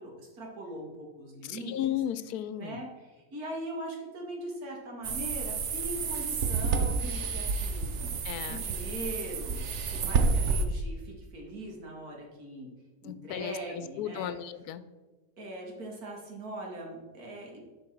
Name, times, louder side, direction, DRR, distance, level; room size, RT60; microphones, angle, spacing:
voice 1, 0.0-1.7 2.6-9.6 9.9-12.7 13.0-14.3 15.4-17.8, right 1 dB, 80° right, -1 dB, 2.3 m, -41 dB
voice 2, 1.4-2.8 8.2-8.6 13.0-14.8, left 11 dB, 85° left, 13 dB, 1.1 m, -35 dB
sound 1, 5.0-10.6, right 4 dB, 55° right, 0.9 m, -30 dB
11.0 x 4.5 x 4.5 m, 1.2 s
omnidirectional pair, 1.6 m